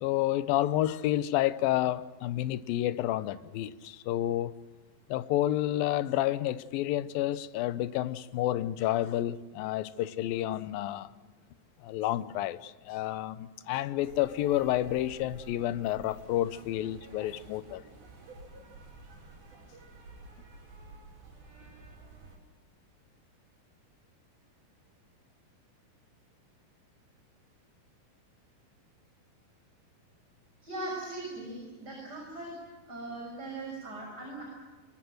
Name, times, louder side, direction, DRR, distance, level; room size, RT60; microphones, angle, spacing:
voice 1, 0.0-4.5 5.1-11.1 11.8-17.8, left 13 dB, 80° left, 2.6 m, -30 dB
sound 1, 14.0-22.4, right 3 dB, 90° right, 7.5 m, -51 dB
voice 2, 30.6-32.5 32.9-34.4, right 2 dB, 25° right, 7.1 m, -39 dB
25.5 x 22.5 x 7.9 m
omnidirectional pair, 4.2 m